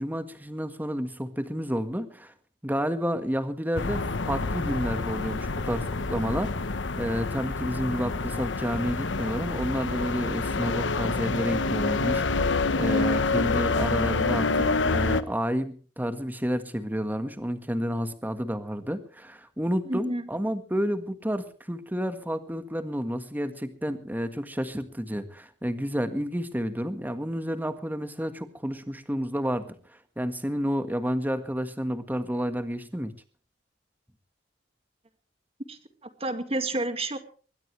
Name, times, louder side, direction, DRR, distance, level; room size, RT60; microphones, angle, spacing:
voice 1, 0.0-2.3 2.6-6.5 7.0-29.7 30.2-33.1, equal, 10° right, 9 dB, 1.6 m, -30 dB
sound 1, 3.8-15.2, left 3 dB, 90° left, 1.0 m, -27 dB
voice 2, 19.9-20.3 35.7-37.2, right 2 dB, 35° right, 8 dB, 2.1 m, -30 dB
22.0 x 19.5 x 3.3 m, 0.40 s
head